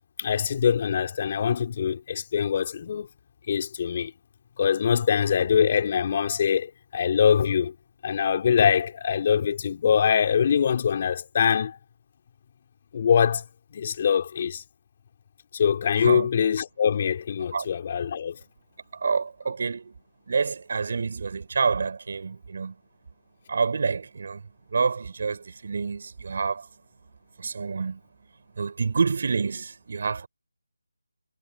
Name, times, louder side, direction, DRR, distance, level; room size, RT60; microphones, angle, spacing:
voice 1, 0.2-3.1 3.5-4.1 4.6-7.7 8.0-11.8 12.9-13.4 13.7-14.6 15.5-18.4, left 7 dB, 35° left, 4.9 m, -23 dB
voice 2, 19.0-19.9 20.3-22.7 23.5-24.4 24.7-26.6 27.4-28.0 28.6-30.3, right 5 dB, 50° right, 4.5 m, -27 dB
figure-of-eight pair, 160°, 0 cm